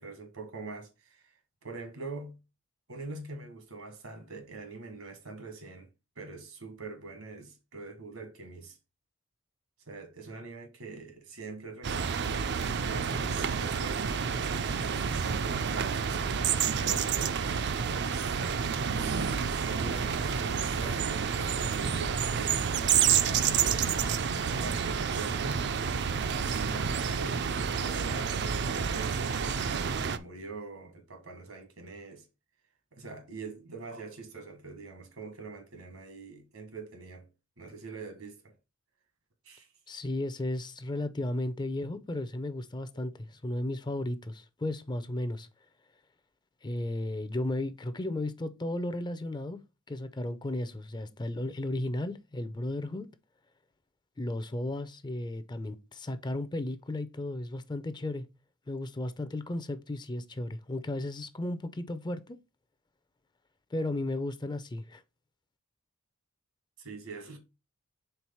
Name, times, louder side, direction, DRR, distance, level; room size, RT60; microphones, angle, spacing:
voice 1, 0.0-1.3 1.6-2.4 2.9-5.9 6.1-8.8 9.9-12.4 12.8-17.6 19.0-22.8 23.2-25.7 26.5-32.3 32.9-37.3 37.6-38.5 39.4-39.7 42.9-43.0 66.8-67.4, right 3 dB, 75° right, 1.5 m, -43 dB
sound 1, 11.8-30.2, right 6 dB, 55° right, 0.5 m, -29 dB
voice 2, 39.9-45.5 46.6-49.6 49.9-53.1 54.2-58.3 58.7-62.4 63.7-65.0, left 1 dB, 20° left, 0.5 m, -34 dB
4.6 x 3.7 x 5.5 m
head